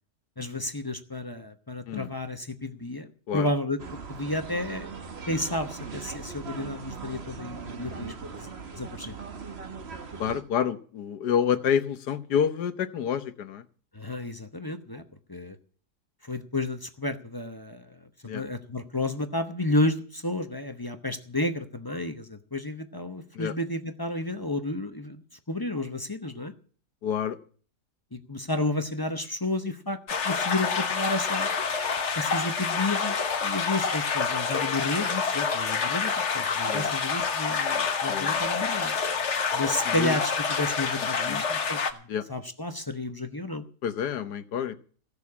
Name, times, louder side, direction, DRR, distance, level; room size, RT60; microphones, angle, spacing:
voice 1, 0.4-3.1 3.3-4.9 5.3-8.5 8.8-9.2 13.9-15.0 15.3-15.6 16.2-26.5 28.1-30.0 30.2-31.5 32.2-33.2 33.4-38.9 39.5-41.8 42.3-43.6, left 2 dB, 20° left, 7 dB, 0.7 m, -31 dB
sound 1, 3.8-10.4, right 5 dB, 40° right, 1.5 m, -39 dB
voice 2, 10.2-13.6 18.2-18.4 23.3-23.5 27.0-27.4 36.7-36.9 38.1-38.5 39.9-40.2 41.3-41.4 42.1-42.2 43.8-44.7, left 8 dB, 80° left, 11 dB, 1.6 m, -28 dB
sound 2, 30.1-41.9, left 5 dB, 50° left, 1.4 m, -27 dB
15.5 x 6.9 x 8.4 m, 0.43 s
omnidirectional pair, 1.7 m